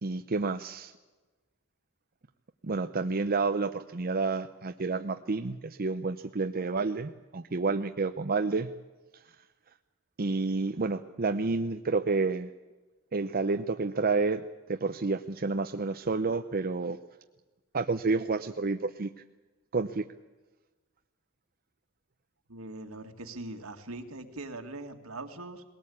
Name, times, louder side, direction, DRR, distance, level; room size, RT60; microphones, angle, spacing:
voice 1, 0.0-0.9 2.6-8.7 10.2-12.5 13.1-14.4 14.7-17.0 17.7-19.1 19.7-20.0, right 3 dB, 45° right, 7 dB, 0.7 m, -29 dB
voice 2, 22.5-25.6, right 2 dB, 75° right, 6 dB, 2.1 m, -41 dB
20.5 x 18.0 x 8.6 m, 1.2 s
head